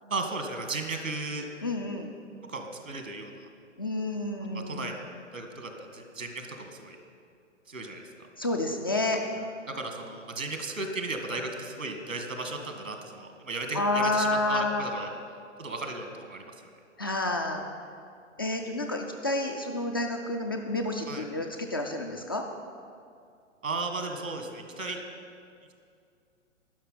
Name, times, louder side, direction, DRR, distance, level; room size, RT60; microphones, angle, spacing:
voice 1, 0.0-1.5 2.5-3.5 4.5-7.0 7.7-8.0 9.7-15.1 15.6-16.4 21.1-21.2 23.6-25.0, right 3 dB, 85° right, 4 dB, 1.9 m, -35 dB
voice 2, 1.6-2.2 3.8-4.9 8.4-9.2 13.7-15.2 17.0-17.6 18.4-22.4, left 2 dB, 20° left, 3 dB, 0.3 m, -29 dB
12.0 x 5.9 x 8.8 m, 2.3 s
figure-of-eight pair, 120°, 39 cm